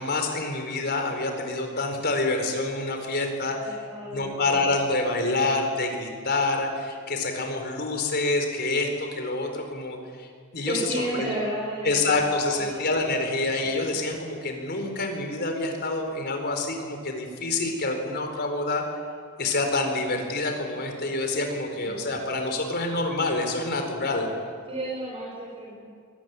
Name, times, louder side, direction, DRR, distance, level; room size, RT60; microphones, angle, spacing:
voice 1, 0.0-3.8 4.1-10.3 10.5-11.3 11.8-18.8 19.4-24.3, left 2 dB, 50° left, 4 dB, 4.5 m, -27 dB
voice 2, 3.6-4.7 10.6-13.2 13.6-13.9 21.8-22.1 24.7-25.9, right 1 dB, 25° right, -3 dB, 4.9 m, -33 dB
23.5 x 19.5 x 9.7 m, 2.1 s
head